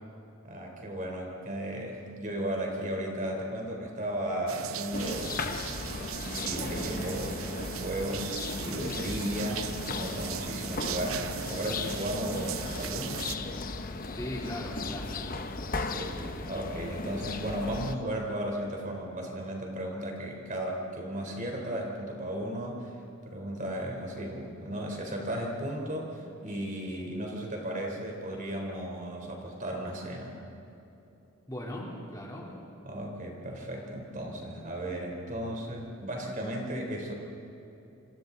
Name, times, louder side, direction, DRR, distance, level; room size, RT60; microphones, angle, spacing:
voice 1, 0.4-5.4 5.8-13.2 15.8-22.9 23.3-30.4 32.8-37.1, right 1 dB, 40° right, 1 dB, 3.8 m, -35 dB
sound 1, 4.5-13.4, right 9 dB, 85° right, 0.8 m, -39 dB
sound 2, 4.9-17.9, left 3 dB, 45° left, 1.0 m, -36 dB
voice 2, 14.1-15.3 31.5-32.5, left 1 dB, 20° left, -3 dB, 3.4 m, -38 dB
28.5 x 26.5 x 4.0 m, 2.9 s
head